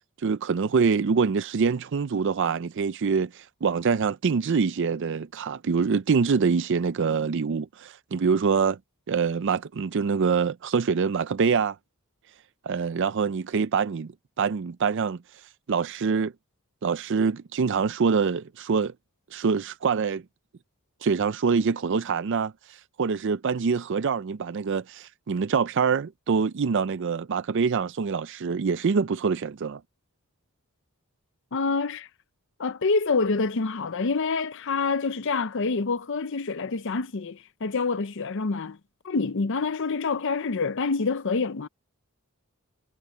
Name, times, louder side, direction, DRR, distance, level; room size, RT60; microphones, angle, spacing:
voice 1, 0.2-8.8 9.1-11.8 12.6-14.1 14.4-15.2 15.7-16.3 16.8-18.9 19.3-20.2 21.0-22.5 23.0-29.8, right 5 dB, 55° right, 0.4 m, -25 dB
voice 2, 31.5-32.1 32.6-38.8 39.0-41.7, left 4 dB, 60° left, 0.6 m, -27 dB
head